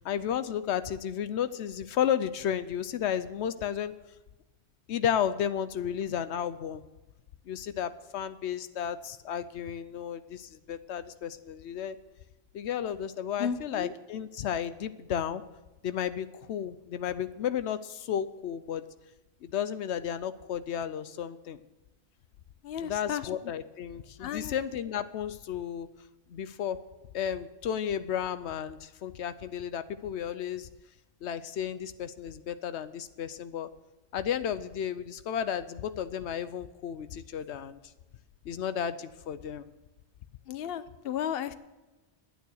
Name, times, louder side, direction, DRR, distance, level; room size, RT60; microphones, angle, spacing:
voice 1, 0.0-3.9 4.9-6.8 7.5-12.0 12.5-15.4 15.8-18.8 19.4-21.6 22.8-25.9 26.3-26.8 27.1-30.7 31.2-33.7 34.1-37.8 38.4-39.7, left 9 dB, 90° left, 12 dB, 0.9 m, -33 dB
voice 2, 13.4-13.9 22.6-23.3 24.2-24.5 40.5-41.5, left 8 dB, 65° left, 13 dB, 0.9 m, -34 dB
11.5 x 9.3 x 6.4 m, 1.1 s
omnidirectional pair, 1.1 m